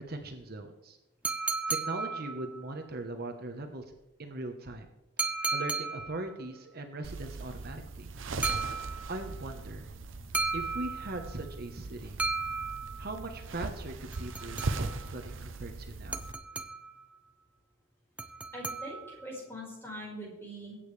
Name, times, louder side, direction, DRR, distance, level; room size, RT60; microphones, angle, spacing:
voice 1, 0.1-1.0 1.7-4.9 5.5-8.1 9.1-9.9 10.5-12.3 13.0-16.2, right 2 dB, 50° right, 4 dB, 1.2 m, -40 dB
sound 1, 1.2-2.7 5.2-6.3 8.4-9.3 10.3-11.4 12.2-13.2 14.1-15.1 16.1-17.0 18.2-19.3, right 4 dB, 5° right, 0.6 m, -35 dB
sound 2, 7.0-16.3, right 3 dB, 85° right, 0.8 m, -39 dB
voice 2, 18.5-20.8, equal, 10° left, -4 dB, 5.1 m, -42 dB
21.5 x 8.8 x 3.4 m, 0.93 s
head